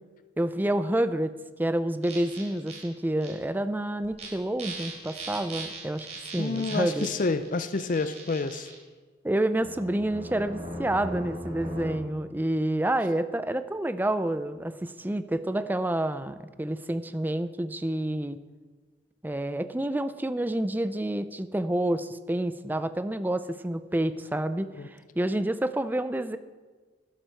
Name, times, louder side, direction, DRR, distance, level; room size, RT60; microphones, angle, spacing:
voice 1, 0.4-1.3 1.6-6.1 6.3-7.1 9.2-18.4 19.2-26.4, right 1 dB, 10° right, 12 dB, 0.4 m, -28 dB
sound 1, 2.0-2.8 3.2-3.3 4.0-4.3 4.6-8.7 9.6-11.9, right 1 dB, 40° right, 3.8 m, -39 dB
voice 2, 6.3-8.7 24.8-24.9, left 3 dB, 45° left, 12 dB, 0.5 m, -29 dB
12.0 x 11.5 x 4.5 m, 1.4 s
head